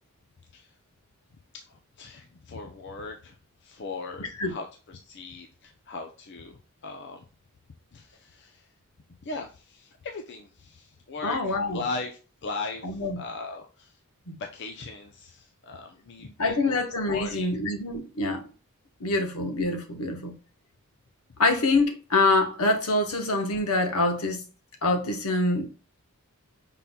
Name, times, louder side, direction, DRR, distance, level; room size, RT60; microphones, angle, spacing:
voice 1, 1.5-3.4 3.6-7.2 7.9-8.7 9.2-13.9 14.4-16.8 17.1-17.5, left 3 dB, 55° left, 0.6 m, -39 dB
voice 2, 11.2-11.8 12.8-13.2 14.3-14.4 16.4-18.4 19.0-20.3 21.4-24.4 24.8-25.7, left 2 dB, 75° left, 1.1 m, -25 dB
5.7 x 3.8 x 2.2 m
head